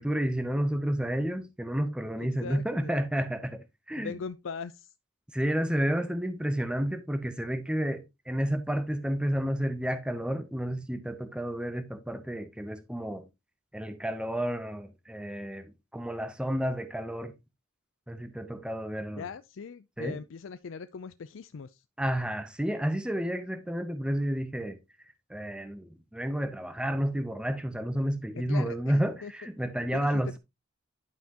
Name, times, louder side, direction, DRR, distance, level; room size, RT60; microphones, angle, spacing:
voice 1, 0.0-4.1 5.3-13.3 13.7-17.3 18.1-19.3 20.0-20.2 22.0-24.8 25.3-30.4, equal, 5° right, 0.6 m, -31 dB
voice 2, 2.2-2.9 4.0-4.9 19.2-21.8 28.3-29.3 29.9-30.1, left 5 dB, 70° left, 0.4 m, -40 dB
11.0 x 5.7 x 2.9 m
head